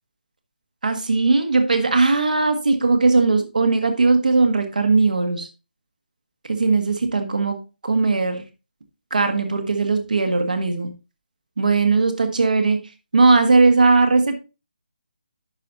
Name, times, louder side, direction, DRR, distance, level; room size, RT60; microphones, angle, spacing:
voice 1, 0.8-5.5 6.5-7.6 7.8-8.4 9.1-10.9 11.6-12.8 13.1-14.4, right 3 dB, 55° right, 6 dB, 1.6 m, -18 dB
10.5 x 5.8 x 2.6 m, 0.30 s
figure-of-eight pair, 150°, 5 cm